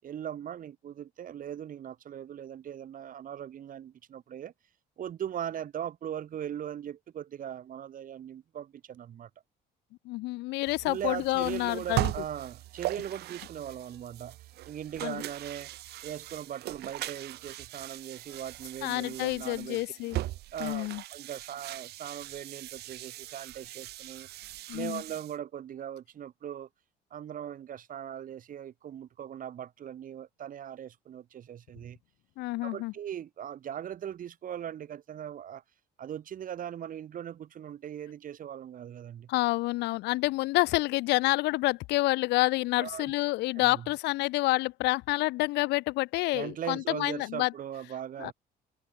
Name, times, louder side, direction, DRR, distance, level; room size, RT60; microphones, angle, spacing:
voice 1, 0.0-4.5 5.0-9.3 10.8-14.4 14.7-15.7 16.0-19.8 20.5-24.3 24.7-26.7 27.1-32.0 32.6-35.6 36.0-39.3 42.8-43.1 43.6-43.9 46.3-48.3, right 10 dB, 55° right, 7.0 m, -39 dB
voice 2, 10.0-12.1 15.0-15.2 18.8-20.2 20.6-21.0 24.7-25.0 32.4-32.9 39.3-47.5 48.2-48.3, left 20 dB, 85° left, 1.2 m, -28 dB
sound 1, 10.7-25.4, right 15 dB, 75° right, 1.4 m, -39 dB
cardioid pair, 110°, 17 cm